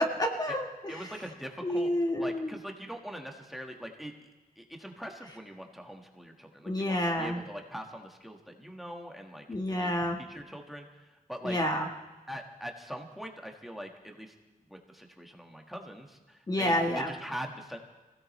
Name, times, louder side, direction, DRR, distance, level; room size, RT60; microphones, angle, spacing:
voice 1, 0.0-1.1 1.6-2.5 6.7-7.4 9.5-10.2 11.4-11.9 16.5-17.1, left 1 dB, 25° left, 2 dB, 1.4 m, -29 dB
voice 2, 0.9-1.9 2.2-4.1 4.5-9.4 9.8-9.9 10.2-11.6 12.3-14.3 14.7-17.8, equal, ahead, 2 dB, 1.6 m, -42 dB
25.0 x 16.5 x 3.2 m, 1.2 s
wide cardioid pair, 120°, 15 cm